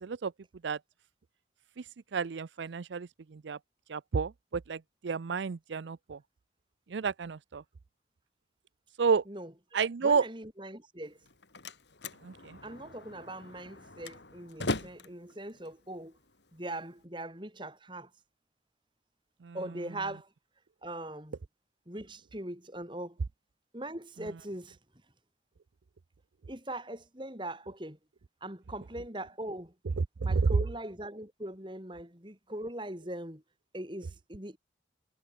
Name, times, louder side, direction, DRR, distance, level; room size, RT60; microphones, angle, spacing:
voice 1, 0.0-0.3 0.6-0.8 2.1-3.1 3.4-3.6 3.9-4.8 5.0-6.2 6.9-7.6 9.0-9.2 9.7-10.2 12.2-12.3 19.5-19.6 30.3-30.4, right 5 dB, 85° right, 0.5 m, -30 dB
voice 2, 10.0-11.2 12.6-16.1 16.5-18.1 19.5-20.3 20.8-21.4 21.9-23.2 23.7-24.8 26.5-28.0 28.4-29.7 30.2-33.4 33.7-34.6, right 1 dB, 25° right, 4.1 m, -41 dB
Slam, 11.1-17.0, left 2 dB, 80° left, 4.5 m, -41 dB
head